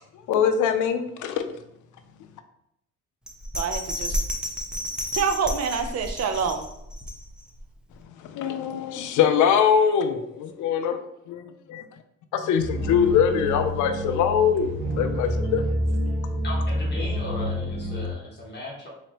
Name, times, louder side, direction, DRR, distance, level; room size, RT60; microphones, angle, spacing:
voice 1, 0.3-1.4 8.2-11.0 11.3-11.8 12.3-15.7, left 7 dB, 80° left, 8 dB, 0.6 m, -23 dB
Bell, 3.3-7.6 8.0-8.1, left 1 dB, 5° right, 0.6 m, -31 dB
voice 2, 3.5-4.2 5.1-6.7, right 5 dB, 55° right, 8 dB, 0.6 m, -26 dB
sound 1, 12.6-18.1, equal, 25° right, 1.0 m, -28 dB
voice 3, 16.4-18.9, left 2 dB, 35° left, -5 dB, 1.2 m, -36 dB
3.9 x 3.2 x 2.9 m, 0.76 s
cardioid pair, 90°, 30 cm